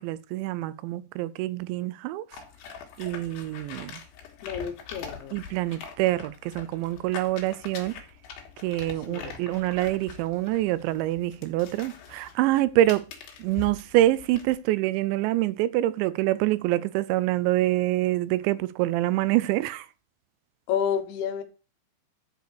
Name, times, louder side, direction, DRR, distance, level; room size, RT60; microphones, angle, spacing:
voice 1, 0.0-2.3 3.0-4.0 5.3-8.0 8.6-13.0 13.4-19.9, right 15 dB, 90° right, 2.9 m, -26 dB
sound 1, 2.3-14.6, left 7 dB, 70° left, 3.7 m, -44 dB
voice 2, 4.4-5.4 9.1-9.4 20.7-21.4, left 8 dB, 85° left, 3.5 m, -30 dB
11.5 x 4.8 x 6.3 m
omnidirectional pair, 5.1 m